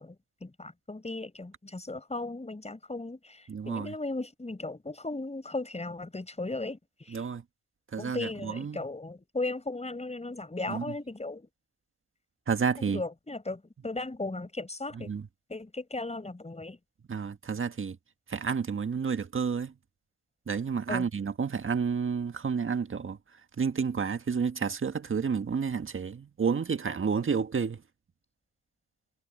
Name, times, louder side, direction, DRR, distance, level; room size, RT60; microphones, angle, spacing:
voice 1, 0.0-7.2 8.0-11.5 12.8-15.1 15.5-16.8 20.9-21.1, left 2 dB, 20° left, 6.0 m, -36 dB
voice 2, 3.5-3.9 7.1-7.4 7.9-8.8 10.7-10.8 12.5-13.0 15.1-15.2 17.1-17.9 18.3-19.7 20.5-23.2 23.6-27.8, right 6 dB, 40° right, 1.6 m, -30 dB
cardioid pair, 65°, 31 cm